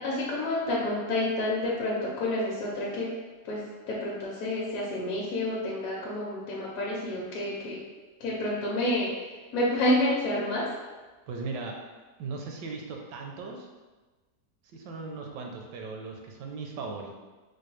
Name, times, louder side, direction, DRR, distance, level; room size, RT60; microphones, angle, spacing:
voice 1, 0.0-3.1 3.4-7.8 8.2-9.1 9.5-10.7, left 1 dB, 65° left, -4 dB, 1.0 m, -29 dB
voice 2, 11.3-11.7 12.2-13.7 14.7-17.2, right 4 dB, 80° right, 1 dB, 1.3 m, -38 dB
4.4 x 2.2 x 3.1 m, 1.3 s
omnidirectional pair, 1.8 m